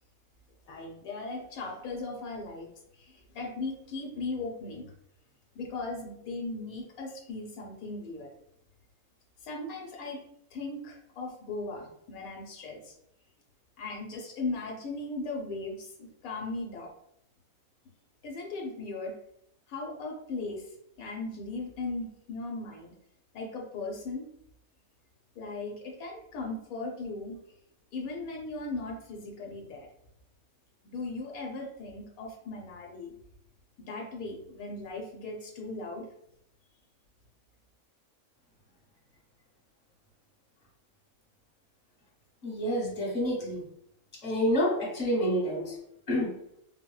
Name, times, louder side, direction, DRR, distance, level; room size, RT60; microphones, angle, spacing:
voice 1, 0.7-2.7 2.9-4.9 5.5-8.3 9.4-10.2 10.5-12.9 13.8-16.9 18.2-19.1 19.7-22.9 23.3-24.3 25.3-27.4 27.9-29.9 30.8-33.1 33.8-36.1, left 3 dB, 85° left, 0 dB, 1.1 m, -38 dB
voice 2, 42.4-43.6 44.2-45.8 46.1-46.3, equal, 25° left, -5 dB, 1.1 m, -28 dB
3.6 x 2.1 x 2.3 m, 0.75 s
omnidirectional pair, 1.5 m